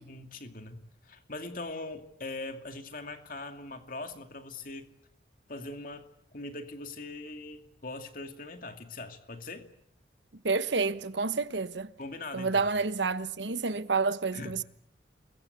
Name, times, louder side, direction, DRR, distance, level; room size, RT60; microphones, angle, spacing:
voice 1, 0.0-4.9 5.5-9.7 12.0-12.7 14.3-14.6, left 2 dB, 45° left, 2.5 m, -41 dB
voice 2, 10.4-11.9 12.3-14.6, right 4 dB, 75° right, 1.1 m, -29 dB
28.5 x 22.5 x 8.5 m
head